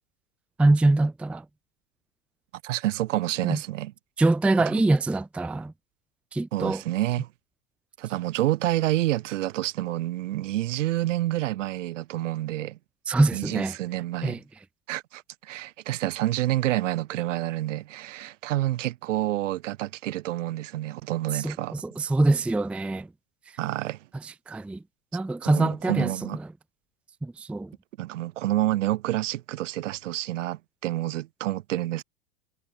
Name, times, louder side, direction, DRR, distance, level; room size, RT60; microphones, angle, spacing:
voice 1, 0.6-1.4 3.4-3.6 4.2-5.7 6.3-6.8 13.1-13.7 14.2-14.4 21.3-23.1 24.2-24.8 25.1-26.1 27.2-27.7, right 2 dB, 5° right, 0.5 m, -24 dB
voice 2, 2.6-3.9 4.7-4.8 6.5-7.3 8.0-12.8 13.3-14.4 14.9-21.8 23.6-24.0 25.4-26.4 28.0-32.0, right 15 dB, 70° right, 4.4 m, -28 dB
hypercardioid pair, 110°, 38 cm